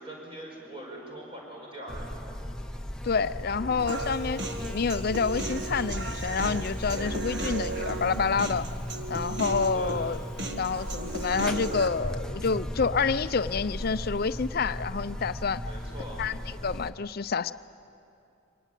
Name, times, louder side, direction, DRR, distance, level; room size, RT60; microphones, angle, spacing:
voice 1, 0.0-2.4 9.7-10.1 15.6-16.2, right 1 dB, 25° right, -2 dB, 5.4 m, -42 dB
Buzz, 1.9-16.9, equal, 5° left, 0.7 m, -36 dB
voice 2, 3.0-8.7 9.1-10.2 10.6-15.6 16.2-16.4 16.6-17.5, left 5 dB, 45° left, 13 dB, 0.5 m, -28 dB
Human voice, 3.9-11.9, right 2 dB, 55° right, 1.6 m, -36 dB
24.5 x 19.0 x 9.2 m, 2.7 s
head